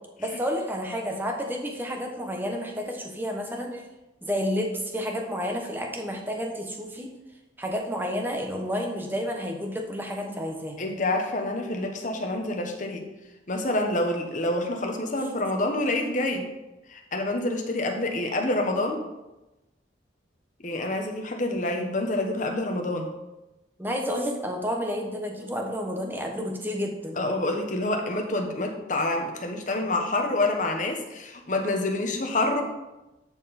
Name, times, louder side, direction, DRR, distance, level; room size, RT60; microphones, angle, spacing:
voice 1, 0.2-3.8 4.2-7.1 7.6-10.9 23.8-27.2, equal, 10° right, 2 dB, 1.2 m, -30 dB
voice 2, 10.8-13.0 13.5-16.5 16.9-19.0 20.6-23.1 27.2-32.6, left 2 dB, 45° left, 3 dB, 1.2 m, -27 dB
13.0 x 4.5 x 4.3 m, 1.0 s
head